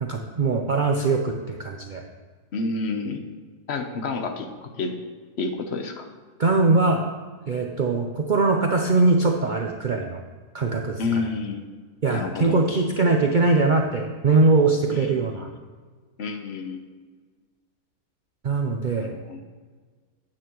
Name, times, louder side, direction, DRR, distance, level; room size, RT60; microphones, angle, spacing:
voice 1, 0.0-2.0 6.4-7.0 7.5-10.2 10.5-11.2 12.0-15.5 18.4-19.1, right 3 dB, 90° right, 2 dB, 0.4 m, -21 dB
voice 2, 2.5-3.2 3.7-5.0 5.4-6.1 11.0-11.6 12.1-12.6 14.9-15.5 16.2-16.8 19.0-19.4, left 3 dB, 50° left, 5 dB, 0.9 m, -29 dB
9.8 x 8.7 x 3.0 m, 1.5 s
omnidirectional pair, 1.7 m